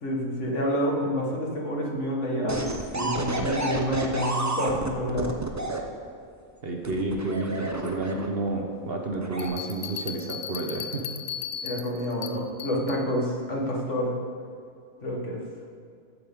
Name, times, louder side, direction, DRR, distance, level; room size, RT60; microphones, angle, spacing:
voice 1, 0.0-5.4 11.6-14.2 15.0-15.4, equal, 60° left, -2 dB, 2.0 m, -28 dB
sound 1, 2.5-5.8 6.8-8.5 9.1-9.5, right 2 dB, 20° right, 0.5 m, -30 dB
voice 2, 6.6-11.0, right 2 dB, 50° right, 2 dB, 1.1 m, -30 dB
sound 2, 9.4-13.1, left 8 dB, 75° left, 1.0 m, -36 dB
14.5 x 8.2 x 3.7 m, 2.4 s
omnidirectional pair, 1.4 m